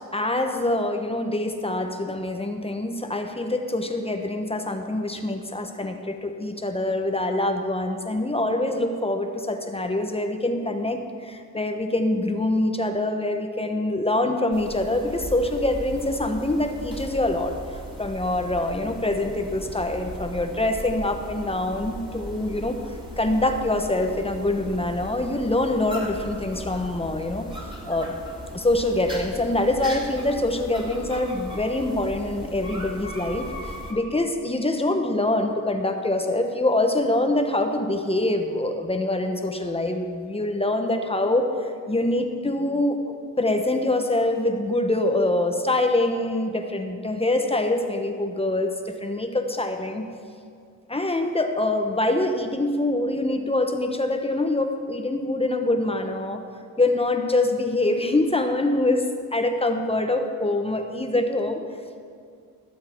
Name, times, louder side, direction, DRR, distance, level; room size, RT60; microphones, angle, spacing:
voice 1, 0.1-17.5 18.0-22.8 23.2-27.5 27.8-28.2 28.5-33.5 33.9-43.0 43.4-50.1 50.9-56.4 56.8-61.6, left 2 dB, 15° left, 5 dB, 1.1 m, -25 dB
sound 1, 14.5-33.9, equal, 15° right, 2.6 m, -38 dB
19.0 x 7.7 x 4.6 m, 2.3 s
cardioid pair, 80°, 36 cm